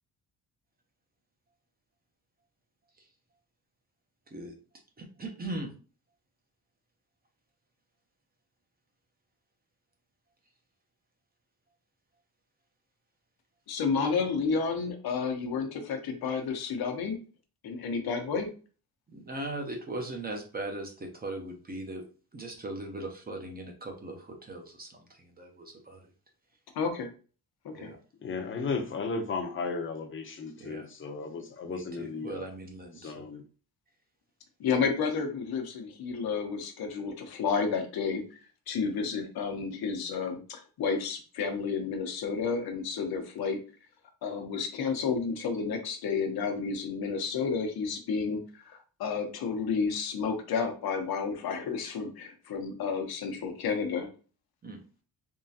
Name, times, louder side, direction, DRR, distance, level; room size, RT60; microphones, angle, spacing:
voice 1, 4.3-4.6 5.0-5.7 19.1-22.0 22.3-26.0 27.7-28.0 30.6-30.9 31.6-33.2 54.6-54.8, right 2 dB, 25° right, 0.7 m, -39 dB
voice 2, 13.7-17.2 17.6-18.5 26.7-27.1 27.7-27.9 34.6-38.4 38.7-43.6 44.2-54.1, left 5 dB, 80° left, 0.9 m, -31 dB
voice 3, 28.2-32.5 33.0-33.4, left 4 dB, 35° left, 0.7 m, -35 dB
3.7 x 3.0 x 2.8 m
wide cardioid pair, 155°, 37 cm